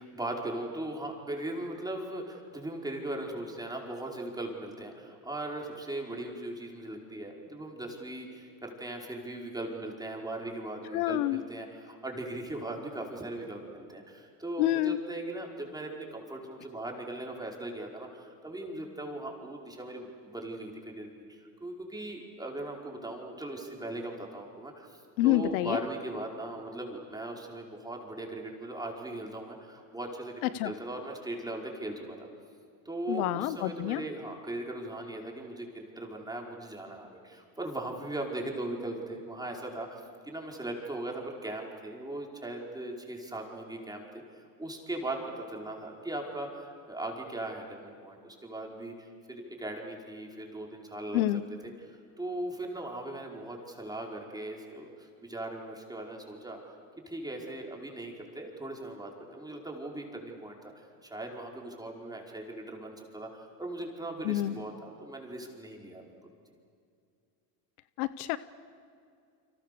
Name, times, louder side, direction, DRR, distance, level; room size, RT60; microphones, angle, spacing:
voice 1, 0.0-32.3 32.8-51.2 51.6-51.7 52.2-56.7 57.1-66.0, right 1 dB, 10° right, 0 dB, 5.0 m, -39 dB
voice 2, 10.9-11.4 14.6-15.0 25.2-25.8 30.4-30.7 33.1-34.0 51.1-51.4 64.2-64.6 68.0-68.4, left 15 dB, 85° left, 15 dB, 0.9 m, -28 dB
30.0 x 25.0 x 6.9 m, 2.4 s
supercardioid pair, 105°, 43 cm